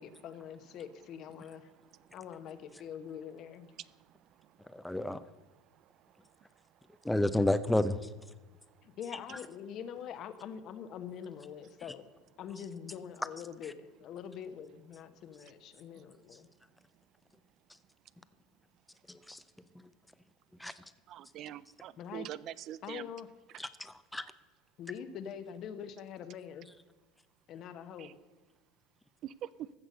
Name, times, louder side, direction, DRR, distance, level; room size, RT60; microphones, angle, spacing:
voice 1, 0.0-1.7 2.1-3.7 8.8-12.0 12.4-16.5 22.0-22.3 22.8-23.3 24.8-26.7 27.5-28.1, left 8 dB, 50° left, 10 dB, 1.1 m, -44 dB
voice 2, 4.7-5.2 7.0-8.0 19.1-19.4 20.6-20.7 23.6-24.2, left 1 dB, 5° left, 13 dB, 0.7 m, -30 dB
voice 3, 21.1-23.0 29.2-29.3, right 12 dB, 50° right, 18 dB, 0.4 m, -43 dB
14.5 x 6.2 x 6.6 m, 1.2 s
hypercardioid pair, 90°, 0 cm